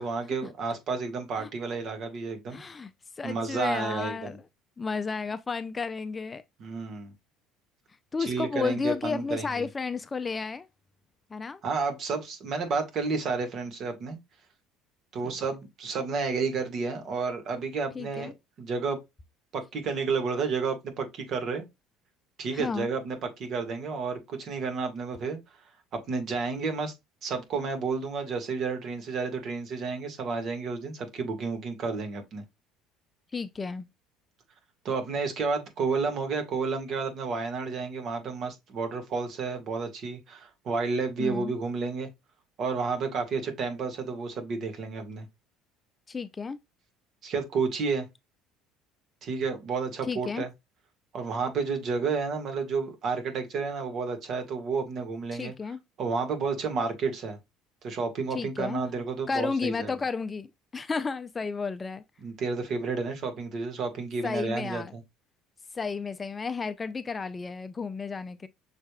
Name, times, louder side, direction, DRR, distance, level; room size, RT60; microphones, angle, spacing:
voice 1, 0.0-2.6 3.2-4.4 6.6-7.1 8.2-9.7 11.6-14.2 15.1-18.3 18.6-19.0 19.5-21.6 22.4-25.4 25.9-26.9 27.2-32.4 34.8-42.1 42.6-45.3 47.2-48.0 49.2-50.5 51.1-55.5 56.0-57.4 57.8-59.9 62.2-65.0, right 4 dB, 50° right, 1.7 m, -31 dB
voice 2, 2.5-2.9 3.2-4.4 4.8-6.4 8.1-10.7 11.3-11.6 15.2-15.4 17.9-18.3 22.5-22.9 33.3-33.9 41.2-41.6 46.1-46.6 50.1-50.5 55.3-55.8 58.3-58.8 59.3-62.0 64.2-64.9 65.7-68.5, left 4 dB, 20° left, 0.4 m, -32 dB
6.4 x 3.4 x 2.3 m
supercardioid pair, 105°, 0 cm